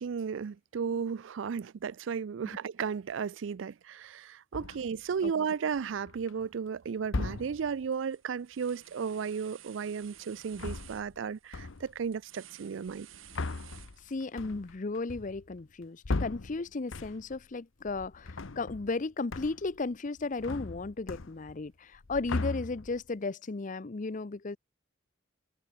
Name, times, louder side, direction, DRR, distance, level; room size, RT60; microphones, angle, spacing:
voice 1, 0.0-13.1, right 6 dB, 70° right, 0.4 m, -34 dB
sound 1, 4.5-5.0 5.8-6.3 7.0-7.8 10.4-11.2 11.5-12.0 12.9-17.4 17.8-19.0 19.3-19.8 20.1-21.7 21.9-23.1, left 3 dB, 80° left, 0.9 m, -38 dB
sound 2, 7.3-7.6 7.9-14.4, right 11 dB, 90° right, 2.0 m, -54 dB
voice 2, 14.0-24.6, left 3 dB, 40° left, 0.6 m, -35 dB
head